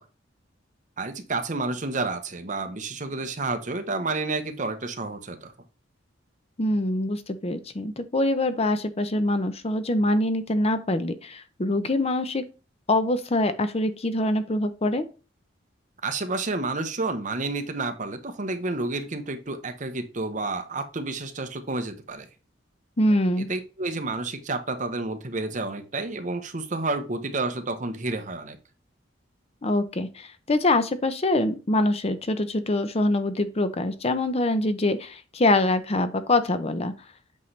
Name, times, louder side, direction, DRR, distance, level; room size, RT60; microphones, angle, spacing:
voice 1, 1.0-5.5 16.0-22.3 23.4-28.6, right 3 dB, 40° right, 8 dB, 0.9 m, -30 dB
voice 2, 6.6-12.4 12.9-15.0 23.0-23.5 29.6-36.9, left 1 dB, 30° left, 11 dB, 0.6 m, -24 dB
8.4 x 5.5 x 3.2 m, 0.34 s
head